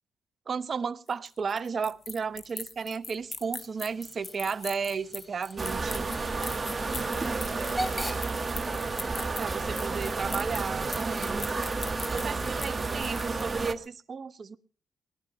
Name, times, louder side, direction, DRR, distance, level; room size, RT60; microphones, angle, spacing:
voice 1, 0.5-6.1 9.4-11.6 12.1-14.6, right 5 dB, 45° right, 12 dB, 0.9 m, -34 dB
sound 1, 1.1-13.7, left 4 dB, 35° left, 1.2 m, -40 dB
Hiss / Train / Alarm, 3.0-12.7, right 1 dB, ahead, 4.2 m, -44 dB
sound 2, 5.6-13.7, right 3 dB, 25° right, 1.4 m, -31 dB
voice 2, 6.6-8.2 8.5-9.5 12.2-12.6, left 2 dB, 15° left, 7 dB, 2.2 m, -49 dB
18.5 x 12.0 x 5.5 m, 0.43 s
cardioid pair, 90°, 0 cm